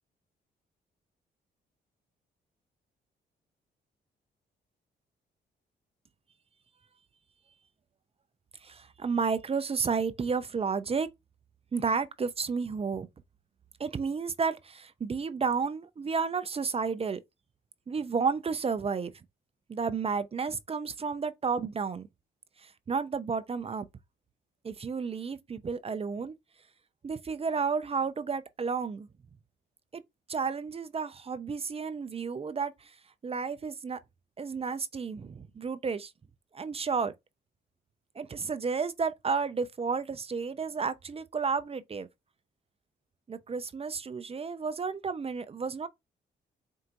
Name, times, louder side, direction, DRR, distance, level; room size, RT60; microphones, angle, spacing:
voice 1, 8.6-11.1 11.7-13.1 13.8-17.2 17.9-19.1 19.7-22.1 22.6-23.9 24.6-26.3 27.0-29.1 29.9-30.0 30.3-32.9 33.2-34.0 34.4-36.1 36.5-37.1 38.2-42.1 43.3-45.9, right 5 dB, 30° right, 0.5 m, -32 dB
4.5 x 2.7 x 2.5 m
cardioid pair, 65°, 19 cm